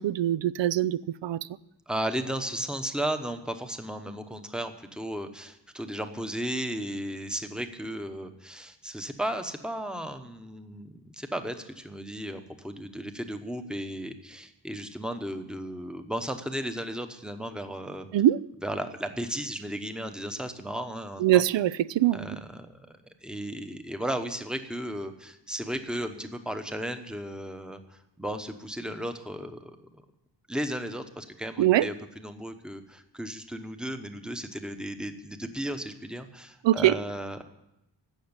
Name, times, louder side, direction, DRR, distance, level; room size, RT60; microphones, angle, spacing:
voice 1, 0.0-1.4 18.1-18.4 21.2-22.4 31.6-31.9 36.6-36.9, right 13 dB, 85° right, 0.5 m, -23 dB
voice 2, 1.9-18.1 18.6-21.4 22.1-22.9 23.2-30.0 30.5-37.4, right 1 dB, ahead, 0.9 m, -35 dB
16.0 x 6.4 x 9.6 m
wide cardioid pair, 170°, 43 cm